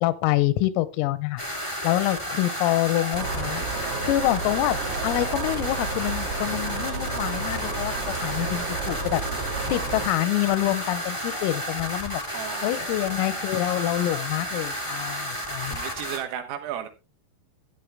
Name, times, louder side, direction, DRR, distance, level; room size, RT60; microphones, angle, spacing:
voice 1, 0.0-1.4 1.8-4.8 5.0-7.9 8.2-12.2 12.6-15.8, left 16 dB, 85° left, 16 dB, 3.5 m, -26 dB
sound 1, 1.4-16.2, equal, 10° left, 1.3 m, -32 dB
sound 2, 3.1-10.1, right 4 dB, 55° right, 3.7 m, -32 dB
voice 2, 12.3-13.0 15.2-16.9, right 10 dB, 80° right, 7 dB, 4.1 m, -35 dB
13.0 x 9.1 x 3.4 m, 0.27 s
omnidirectional pair, 5.9 m